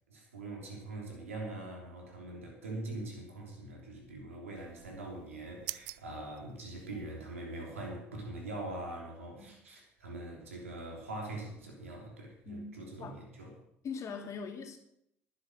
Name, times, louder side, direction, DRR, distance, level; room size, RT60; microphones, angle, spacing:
voice 1, 0.1-13.5, right 2 dB, 90° right, 0 dB, 3.2 m, -43 dB
sound 1, 4.5-7.3, right 21 dB, 70° right, 0.4 m, -47 dB
voice 2, 12.5-13.2 13.8-14.8, left 5 dB, 45° left, 5 dB, 2.5 m, -41 dB
11.5 x 10.5 x 6.4 m, 0.76 s
hypercardioid pair, 65°, 7 cm